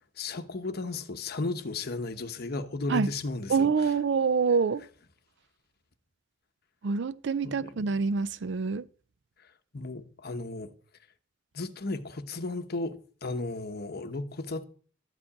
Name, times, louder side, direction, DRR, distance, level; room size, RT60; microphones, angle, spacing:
voice 1, 0.0-3.9 7.4-7.7 9.7-10.7 11.5-14.6, left 3 dB, 55° left, 1.0 m, -35 dB
voice 2, 3.5-4.8 6.8-8.8, right 5 dB, 65° right, 0.5 m, -26 dB
12.5 x 5.2 x 8.5 m
head